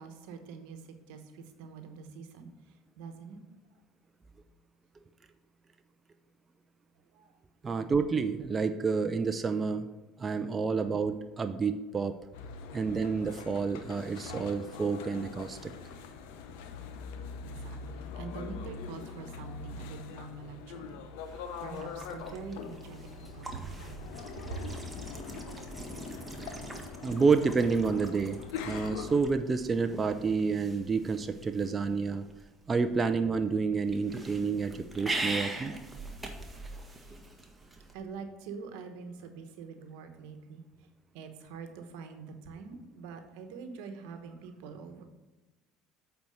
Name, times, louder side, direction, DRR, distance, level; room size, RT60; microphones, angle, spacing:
voice 1, 0.0-2.5 3.0-3.4 7.1-7.3 17.4-21.0 21.3-24.7 37.0-37.1 37.6-40.6 41.1-45.0, right 5 dB, 80° right, 7 dB, 1.0 m, -45 dB
voice 2, 7.6-9.9 10.2-12.2 12.7-15.7 27.0-32.2 32.7-35.7, right 4 dB, 30° right, 8 dB, 0.5 m, -29 dB
sound 1, 12.3-29.2, left 5 dB, 80° left, 0.8 m, -43 dB
sound 2, 21.2-37.9, right 2 dB, 10° right, 1.5 m, -42 dB
8.2 x 4.5 x 6.5 m, 1.1 s
supercardioid pair, 80°, 0 cm